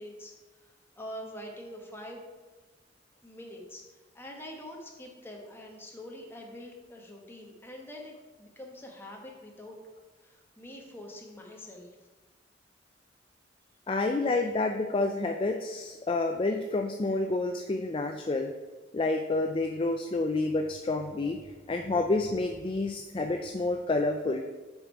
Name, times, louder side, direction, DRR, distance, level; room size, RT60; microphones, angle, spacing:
voice 1, 0.0-2.2 3.2-9.8 10.2-12.0, left 1 dB, 10° left, 0 dB, 1.1 m, -45 dB
voice 2, 13.9-18.5 18.9-21.4 21.7-24.4, left 2 dB, 30° left, 5 dB, 0.3 m, -29 dB
7.3 x 5.0 x 4.6 m, 1.3 s
head